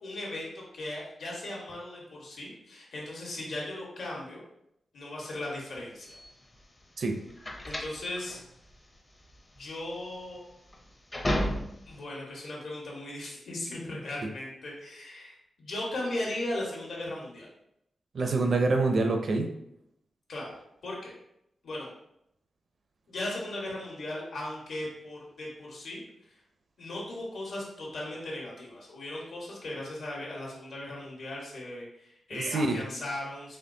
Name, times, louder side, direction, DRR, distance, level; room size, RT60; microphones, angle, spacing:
voice 1, 0.0-4.4 4.9-6.2 7.6-8.4 9.5-10.4 11.8-17.5 20.3-20.6 20.8-21.1 21.6-21.9 23.1-26.0 26.3-26.4 26.8-33.6, left 1 dB, 70° left, -3 dB, 1.3 m, -37 dB
sound 1, 6.0-12.0, equal, 20° left, 0.5 m, -34 dB
voice 2, 18.1-19.5 32.3-32.8, right 3 dB, 50° right, 4 dB, 0.5 m, -26 dB
4.3 x 3.1 x 2.7 m, 0.78 s
wide cardioid pair, 160°, 0 cm